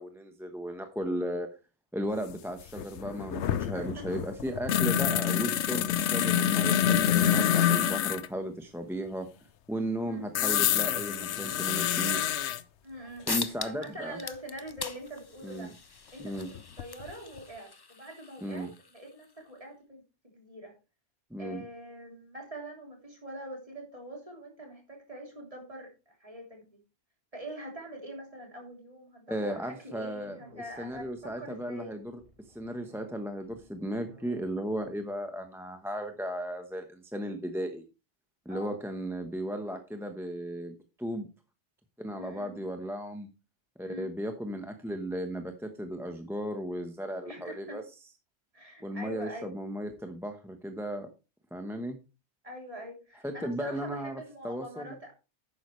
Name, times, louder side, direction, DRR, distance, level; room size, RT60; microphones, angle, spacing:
voice 1, 0.0-1.5 1.9-9.3 9.7-12.2 13.3-14.2 15.4-15.7 16.2-16.5 18.4-18.7 21.3-21.6 29.3-32.2 32.5-37.8 38.4-41.3 42.0-43.3 43.8-47.8 48.8-51.1 51.5-52.0 53.2-55.0, equal, ahead, 5 dB, 0.9 m, -35 dB
sound 1, 2.3-2.4 2.6-8.3 10.3-12.6 14.8-14.9 16.4-17.1 17.4-17.5, left 10 dB, 80° left, 1.0 m, -27 dB
voice 2, 12.8-15.7 16.1-18.7 18.9-20.0 20.3-20.7 21.4-26.8 27.3-31.9 38.5-38.8 42.1-42.6 43.8-44.1 47.3-47.8 48.5-49.5 52.4-55.1, right 1 dB, 30° right, 0 dB, 3.5 m, -44 dB
sound 2, 12.9-13.0 13.3-13.9 14.2-19.3, left 4 dB, 30° left, 0.5 m, -40 dB
sound 3, 30.1-35.1, right 1 dB, 85° right, 5.8 m, -55 dB
11.0 x 9.0 x 3.2 m, 0.30 s
omnidirectional pair, 1.2 m